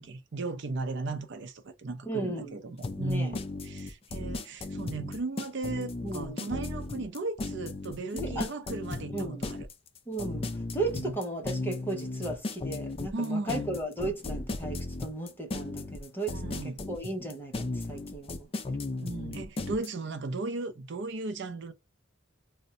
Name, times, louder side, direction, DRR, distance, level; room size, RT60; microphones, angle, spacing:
voice 1, 0.0-9.7 13.1-13.6 16.3-16.8 19.0-21.7, right 2 dB, 65° right, 0.5 m, -36 dB
voice 2, 2.1-2.5 3.0-3.3 6.0-6.5 8.1-8.5 9.1-9.5 10.1-18.5, right 2 dB, 10° left, 0.8 m, -35 dB
sound 1, 2.8-19.9, left 2 dB, 30° left, 0.4 m, -35 dB
2.6 x 2.2 x 3.9 m
head